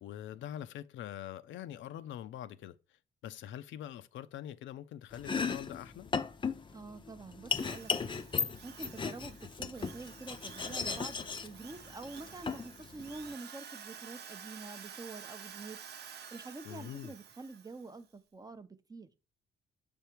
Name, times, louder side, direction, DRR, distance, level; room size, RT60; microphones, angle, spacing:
voice 1, 0.0-2.8 3.2-6.1 16.6-17.1, left 11 dB, 75° left, 0.5 m, -44 dB
Domestic sounds home sounds, 5.1-13.3, left 5 dB, 25° left, 0.5 m, -37 dB
voice 2, 6.7-8.3 8.6-15.8 16.3-19.1, right 3 dB, 20° right, 0.6 m, -47 dB
Drill, 7.5-17.9, right 7 dB, 55° right, 0.7 m, -51 dB
6.6 x 3.5 x 4.5 m
cardioid pair, 90°, 20 cm